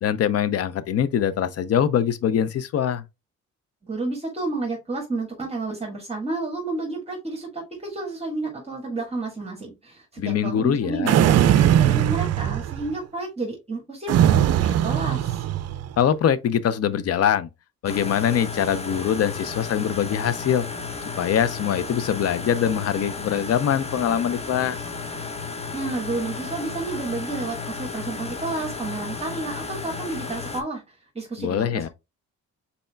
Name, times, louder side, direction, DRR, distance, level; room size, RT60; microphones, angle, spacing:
voice 1, 0.0-3.0 10.2-11.1 16.0-17.5 17.8-20.6 21.2-24.8 31.4-31.9, left 9 dB, 55° left, 0.6 m, -23 dB
voice 2, 3.8-15.4 25.7-30.8 31.1-31.9, right 3 dB, 20° right, 1.5 m, -31 dB
sound 1, 11.1-12.9 14.1-15.9, right 11 dB, 55° right, 0.4 m, -20 dB
sound 2, 17.9-30.6, left 4 dB, 20° left, 0.7 m, -33 dB
5.4 x 4.2 x 2.3 m
cardioid pair, 90°, 30 cm